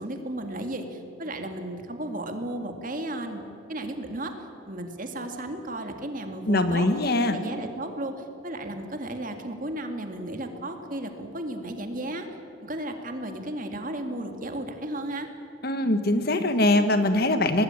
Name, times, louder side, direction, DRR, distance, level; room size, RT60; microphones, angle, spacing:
voice 1, 0.0-3.4 3.7-4.3 4.7-6.9 7.3-12.3 12.6-15.3, right 1 dB, 40° right, 5 dB, 2.2 m, -34 dB
voice 2, 6.5-7.4 15.6-17.6, left 1 dB, 50° left, 9 dB, 1.5 m, -22 dB
24.0 x 19.0 x 9.1 m, 2.6 s
head